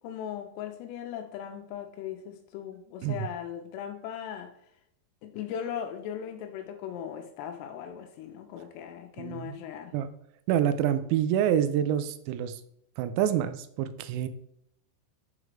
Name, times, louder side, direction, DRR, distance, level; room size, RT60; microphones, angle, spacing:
voice 1, 0.0-4.5 5.2-9.9, left 9 dB, 80° left, 6 dB, 2.5 m, -38 dB
voice 2, 9.2-9.5 9.9-10.1 10.5-12.6 13.0-14.3, right 10 dB, 90° right, 12 dB, 2.9 m, -27 dB
6.5 x 4.9 x 3.2 m, 0.76 s
omnidirectional pair, 5.2 m